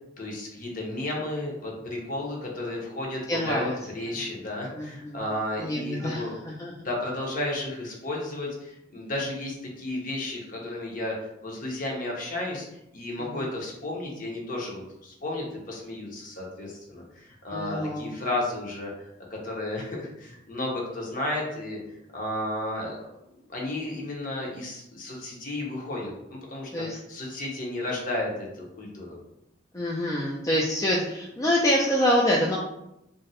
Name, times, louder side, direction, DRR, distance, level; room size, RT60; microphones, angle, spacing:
voice 1, 0.2-6.3 6.8-21.8 22.1-23.0 23.5-29.2, left 1 dB, 45° left, -1 dB, 0.8 m, -33 dB
voice 2, 3.3-3.7 4.7-5.2 5.6-6.7 13.2-13.4 17.5-18.0 26.7-27.0 29.7-32.6, left 1 dB, 15° left, -4 dB, 0.3 m, -26 dB
2.5 x 2.1 x 4.0 m, 0.85 s
head